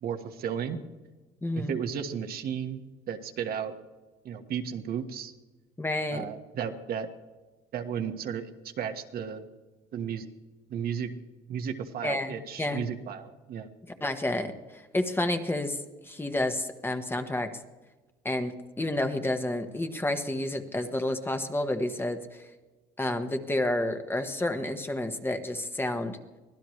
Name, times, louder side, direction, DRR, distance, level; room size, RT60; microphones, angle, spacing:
voice 1, 0.0-0.8 1.5-2.8 3.1-3.7 4.2-5.3 6.1-7.1 7.7-8.5 8.8-9.5 9.9-10.2 10.7-11.1 11.5-13.7, right 8 dB, 65° right, 6 dB, 1.6 m, -34 dB
voice 2, 1.4-1.8 5.8-6.2 12.0-12.8 14.0-15.8 16.0-17.5 18.2-22.2 23.0-26.2, left 1 dB, 15° left, 6 dB, 1.3 m, -30 dB
24.0 x 16.5 x 3.3 m, 1.2 s
cardioid pair, 110°, 17 cm